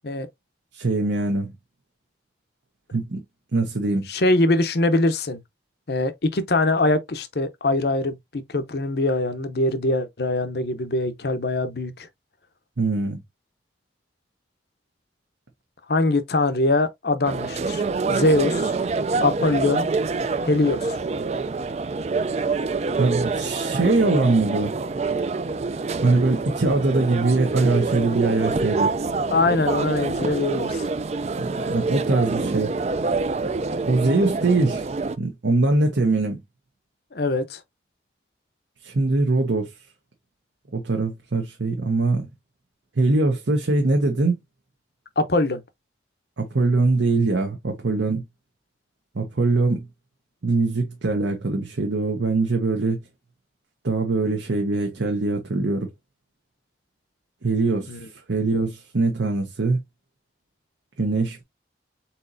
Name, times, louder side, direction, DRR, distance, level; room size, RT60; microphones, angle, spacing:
voice 1, 0.7-1.5 2.9-3.2 3.5-4.1 12.8-13.2 23.0-24.7 26.0-28.9 31.4-32.7 33.9-34.9 35.2-36.4 38.8-39.7 40.7-42.3 43.0-44.4 46.4-48.2 49.1-49.9 50.4-53.0 53.8-55.9 57.4-57.9 58.3-59.8 61.0-61.4, right 3 dB, 75° right, 0.9 m, -22 dB
voice 2, 4.1-5.4 5.9-12.1 15.9-17.8 18.1-18.7 19.2-19.9 20.4-20.9 29.3-30.8 37.1-37.6 45.2-45.6 57.9-58.1, left 2 dB, 55° left, 0.7 m, -22 dB
sound 1, 17.2-35.2, right 3 dB, 35° right, 0.3 m, -26 dB
4.3 x 4.1 x 2.6 m
head